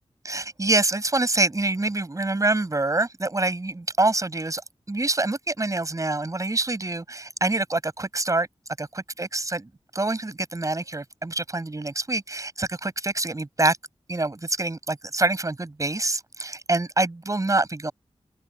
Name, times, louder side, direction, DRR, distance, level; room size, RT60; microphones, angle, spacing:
voice 1, 0.2-4.6 4.9-8.5 8.8-8.9 9.2-13.8 14.1-17.9, right 2 dB, 30° right, 7.8 m, -26 dB
open air
wide cardioid pair, 110°, 11 cm